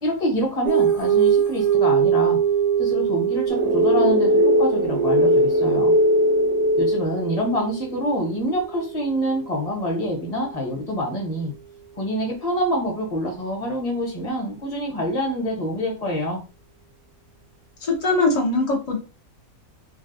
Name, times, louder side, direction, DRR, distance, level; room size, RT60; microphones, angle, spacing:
voice 1, 0.0-2.4 2.8-5.9 6.8-11.5 12.0-16.4, equal, 30° left, 0 dB, 0.9 m, -26 dB
sound 1, 0.7-9.6, right 9 dB, 70° right, 0.3 m, -24 dB
sound 2, 3.5-7.7, equal, 85° right, 1.2 m, -19 dB
voice 2, 17.9-19.0, left 3 dB, 60° left, -1 dB, 0.4 m, -21 dB
3.3 x 2.2 x 2.6 m, 0.33 s
omnidirectional pair, 1.5 m